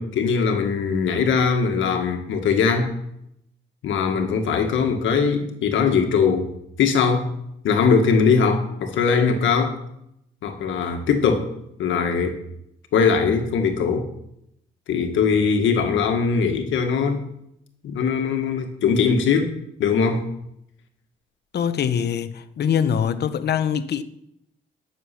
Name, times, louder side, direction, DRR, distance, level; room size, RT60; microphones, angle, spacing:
voice 1, 0.0-2.9 3.8-6.5 6.8-7.3 7.6-9.8 10.4-11.5 11.8-12.4 12.9-14.1 14.9-17.2 17.8-19.5 19.8-20.2, left 5 dB, 75° left, 1.6 m, -21 dB
voice 2, 21.5-24.0, left 8 dB, 55° left, 0.9 m, -23 dB
11.5 x 6.8 x 5.8 m
cardioid pair, 90°, 20 cm